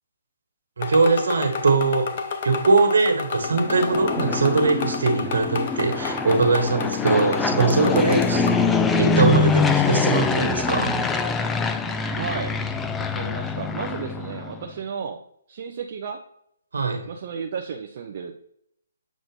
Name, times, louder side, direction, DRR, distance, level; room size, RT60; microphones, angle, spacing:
sound 1, 0.8-8.7, left 5 dB, 45° left, 0.7 m, -32 dB
voice 1, 0.8-2.1 2.4-8.5 9.0-11.0 16.7-17.0, right 3 dB, 70° right, 3 dB, 1.6 m, -21 dB
Fixed-wing aircraft airplane, 3.5-14.6, left 4 dB, 10° left, 0.4 m, -24 dB
voice 2, 12.1-12.6 13.0-15.2 15.5-16.2 17.1-18.4, right 6 dB, 50° right, 4 dB, 0.5 m, -33 dB
7.4 x 2.5 x 5.3 m, 0.72 s
figure-of-eight pair, 135°, 0 cm